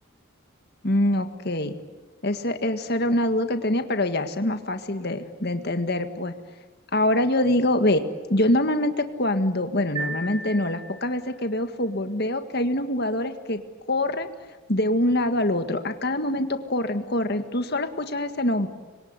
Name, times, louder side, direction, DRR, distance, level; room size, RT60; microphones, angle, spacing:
voice 1, 0.8-1.7 2.2-6.3 6.9-8.0 8.3-13.6 13.9-14.3 14.7-18.7, left 1 dB, 45° left, 8 dB, 1.8 m, -24 dB
sound 1, 10.0-11.4, right 3 dB, 25° right, 7.0 m, -35 dB
26.0 x 22.5 x 9.7 m, 1.3 s
head